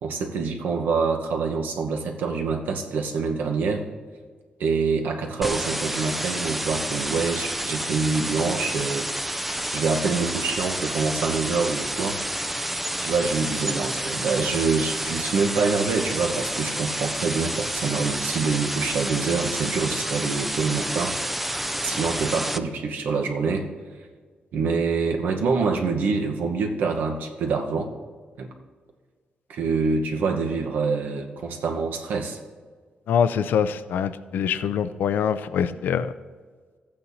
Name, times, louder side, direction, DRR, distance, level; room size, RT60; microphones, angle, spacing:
voice 1, 0.0-3.9 4.6-9.5 9.7-12.4 13.0-21.6 21.8-23.7 24.5-27.9 28.4-28.5 29.5-32.4, right 4 dB, 80° right, 3 dB, 1.0 m, -26 dB
sound 1, 5.4-22.6, right 1 dB, 5° right, 0.3 m, -29 dB
voice 2, 33.1-36.1, left 7 dB, 85° left, 13 dB, 0.4 m, -24 dB
15.0 x 8.6 x 2.8 m, 1.5 s
wide cardioid pair, 155°, 3 cm